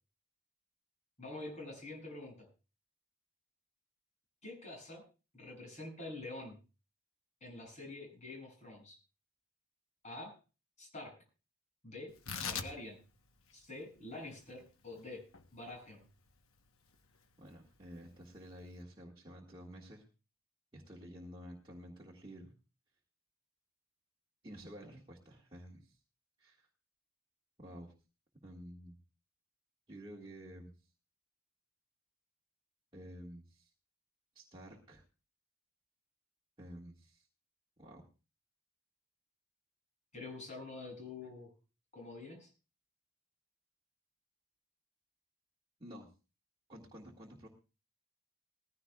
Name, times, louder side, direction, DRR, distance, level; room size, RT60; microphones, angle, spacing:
voice 1, 1.2-2.5 4.4-5.0 5.3-6.6 7.4-9.0 10.0-10.4 10.8-11.2 11.8-12.1 12.4-13.0 13.5-15.3 15.5-16.0 40.1-41.5 41.9-42.5, left 2 dB, 35° left, 1 dB, 7.7 m, -46 dB
Tearing, 12.1-18.8, left 6 dB, 85° left, 1.1 m, -47 dB
voice 2, 17.4-20.0 20.7-22.6 24.4-26.0 26.4-26.7 27.6-27.9 28.4-29.0 29.9-30.7 32.9-33.7 34.3-35.0 36.6-37.3 37.8-38.0 45.8-46.1 46.7-47.5, equal, 25° right, -4 dB, 1.9 m, -51 dB
19.5 x 15.5 x 2.4 m, 0.33 s
head